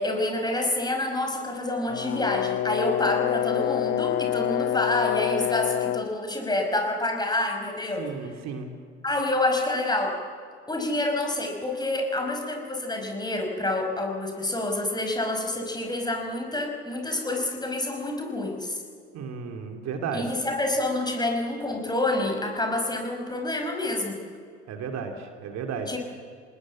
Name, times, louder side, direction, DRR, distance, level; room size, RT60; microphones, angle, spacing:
voice 1, 0.0-8.1 9.0-10.2 10.7-18.8 20.1-24.2 25.9-26.0, left 2 dB, 10° left, 3 dB, 5.0 m, -28 dB
Brass instrument, 1.9-6.1, left 12 dB, 40° left, 0.6 m, -27 dB
voice 2, 8.0-8.7 19.1-20.3 24.7-25.9, right 6 dB, 50° right, 4 dB, 2.8 m, -33 dB
27.0 x 19.5 x 7.5 m, 2.1 s
hypercardioid pair, 65°, 34 cm